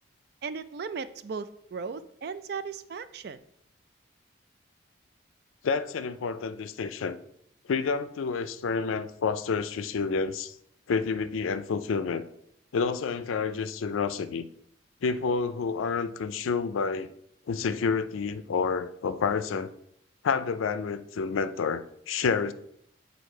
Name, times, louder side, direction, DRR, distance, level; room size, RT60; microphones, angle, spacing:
voice 1, 0.4-3.4, right 5 dB, 50° right, 0.3 m, -36 dB
voice 2, 5.6-7.2 7.7-10.5 10.9-12.3 12.7-14.5 15.0-17.1 17.5-19.7 20.2-22.5, left 5 dB, 85° left, 0.4 m, -29 dB
8.1 x 2.7 x 4.5 m
head